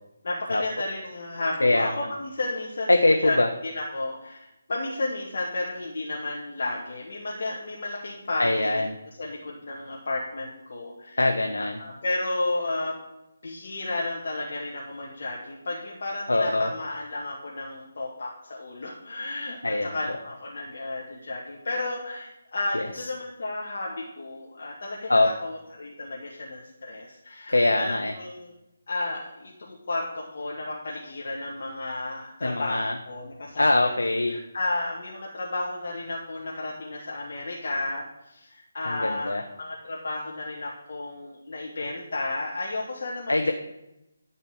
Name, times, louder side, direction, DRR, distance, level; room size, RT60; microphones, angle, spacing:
voice 1, 0.2-2.9 3.2-3.4 3.7-8.9 9.2-11.2 11.8-13.0 13.4-28.5 28.9-33.9 34.3-39.3 39.6-43.5, left 2 dB, 50° left, -3 dB, 1.7 m, -32 dB
voice 2, 1.6-2.1 2.9-3.5 8.4-9.0 11.2-11.8 16.3-16.7 19.6-20.2 22.7-23.1 25.1-25.3 27.5-28.1 32.4-33.0 33.6-34.4 38.8-39.4 43.3-43.5, left 2 dB, 70° left, 4 dB, 0.9 m, -23 dB
12.0 x 4.2 x 8.0 m, 0.92 s
figure-of-eight pair, 150°, 0 cm